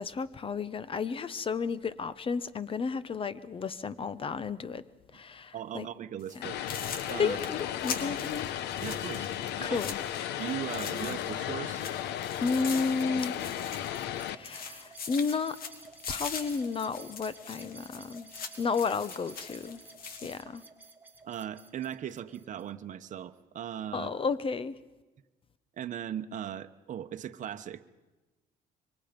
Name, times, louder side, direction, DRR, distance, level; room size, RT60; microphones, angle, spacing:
voice 1, 0.0-4.8 5.1-5.9 6.3-6.5 7.2-8.5 9.6-10.0 12.4-13.3 13.7-13.8 14.3-15.6 16.1-18.3 18.6-19.8 20.2-20.6 23.9-24.8, left 5 dB, 30° left, 0.9 m, -32 dB
voice 2, 5.5-6.6 7.1-7.4 8.8-9.3 9.6-9.8 10.4-11.9 21.2-24.1 25.8-27.8, right 10 dB, 50° right, 1.0 m, -38 dB
sound 1, 6.2-6.4 6.7-11.4 11.7-14.2 14.4-20.4, left 5 dB, 60° left, 2.4 m, -42 dB
Vehicle, 6.4-14.4, left 11 dB, 80° left, 0.9 m, -35 dB
sound 2, 11.6-22.7, right 4 dB, 10° right, 2.4 m, -53 dB
25.5 x 24.0 x 5.2 m
cardioid pair, 110°, 17 cm